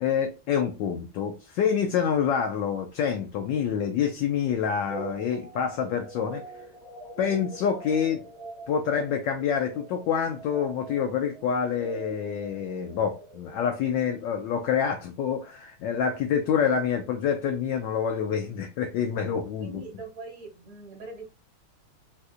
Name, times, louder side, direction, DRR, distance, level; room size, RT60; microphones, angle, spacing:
voice 1, 0.0-6.4 7.2-8.2 8.7-19.8, left 7 dB, 75° left, 1.1 m, -27 dB
Void Ripples, 4.9-14.0, right 1 dB, 40° right, 0.9 m, -43 dB
voice 2, 19.6-21.3, right 3 dB, 60° right, 1.4 m, -42 dB
4.1 x 2.5 x 2.4 m
omnidirectional pair, 2.2 m